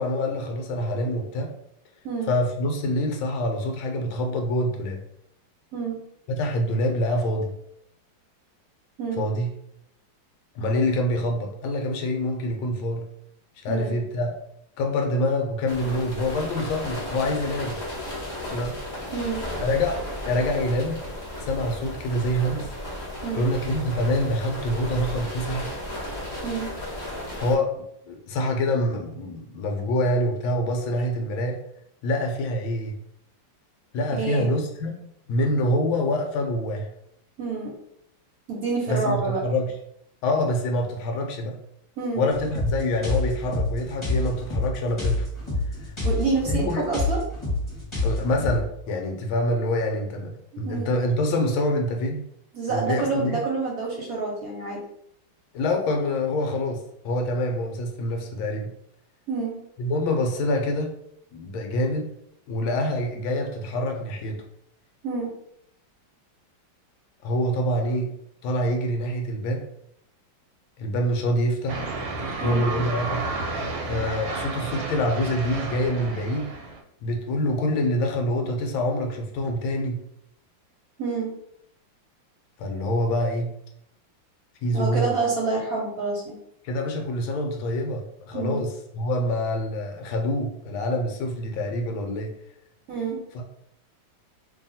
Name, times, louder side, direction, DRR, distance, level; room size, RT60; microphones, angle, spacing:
voice 1, 0.0-1.5 2.3-5.0 6.3-7.5 9.2-9.5 10.5-13.0 13.6-14.3 14.8-17.8 18.5-18.8 19.6-20.0 20.2-21.0 21.4-22.7 23.3-25.7 27.4-31.6 32.0-32.9 33.9-34.9 35.3-36.9 38.9-39.7 40.2-41.6 42.2-45.3 46.5-46.8 48.0-52.2 52.7-53.4 55.5-58.7 59.8-60.9 61.3-62.1 62.5-64.4 67.2-68.1 68.4-69.6 70.8-71.8 72.4-73.2 73.8-76.5 77.0-80.0 82.6-83.5 84.6-85.1 86.6-92.3 93.3-93.4, left 1 dB, 80° left, 3 dB, 1.4 m, -26 dB
sound 1, 15.7-27.6, left 1 dB, 40° left, 0.5 m, -34 dB
voice 2, 19.1-19.4 23.2-23.4 26.4-26.7 34.2-34.5 37.4-37.8 38.5-39.4 42.0-42.3 46.0-47.2 50.5-50.9 52.5-54.8 59.3-59.6 65.0-65.3 72.4-72.7 81.0-81.3 84.7-86.4 88.3-88.6 92.9-93.2, right 4 dB, 60° right, -3 dB, 1.1 m, -27 dB
sound 2, 42.3-48.6, left 2 dB, 15° left, 1.2 m, -27 dB
sound 3, 71.7-76.8, right 3 dB, 75° right, 1.3 m, -31 dB
3.0 x 2.7 x 4.0 m, 0.75 s
omnidirectional pair, 2.3 m